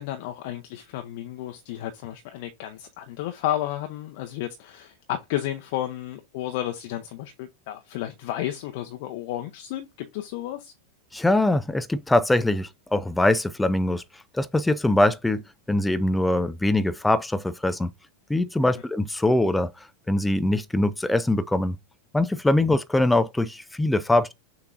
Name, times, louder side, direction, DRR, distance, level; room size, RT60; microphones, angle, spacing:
voice 1, 0.0-10.7, left 13 dB, 50° left, 0.6 m, -32 dB
voice 2, 11.1-14.0 14.3-15.4 15.7-17.9 18.3-19.7 20.1-21.8 22.1-24.3, left 1 dB, 5° left, 0.3 m, -22 dB
6.5 x 2.8 x 2.5 m
figure-of-eight pair, 90°, 0 cm